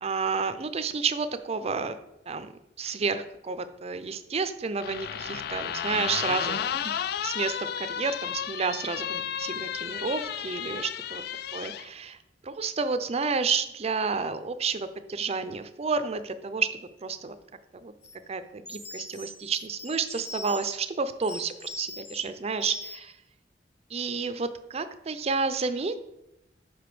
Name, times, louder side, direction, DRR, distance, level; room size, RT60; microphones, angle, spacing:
voice 1, 0.0-1.9 2.3-2.5 2.8-11.2 11.5-12.2 12.4-17.4 17.7-17.9 18.3-23.1 23.9-26.0, right 5 dB, 35° right, 11 dB, 0.5 m, -30 dB
sound 1, 4.8-11.9, left 9 dB, 60° left, 0.3 m, -33 dB
sound 2, 18.0-18.2 18.7-20.8 21.2-22.2 22.6-23.1, left 2 dB, 40° left, 1.6 m, -41 dB
5.4 x 5.0 x 6.0 m, 0.87 s
head